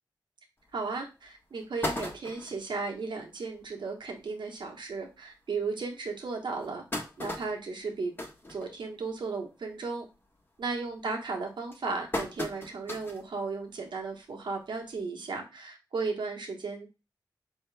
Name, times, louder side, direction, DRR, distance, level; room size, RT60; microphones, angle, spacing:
sound 1, 0.7-0.8 1.3-1.4 1.6-2.7 3.2-3.3 3.6-3.7 4.0-4.2 4.9-5.0 5.5-5.6 6.4-9.2 9.6-9.9 10.2-10.6 11.3-13.3 13.7-13.8 15.0-15.1, left 1 dB, 25° left, 1.1 m, -37 dB
voice 1, 0.7-6.8 7.2-8.1 8.5-10.1 10.6-16.9, right 4 dB, 70° right, 2 dB, 1.1 m, -35 dB
4.4 x 2.8 x 3.3 m, 0.29 s
cardioid pair, 50°, 8 cm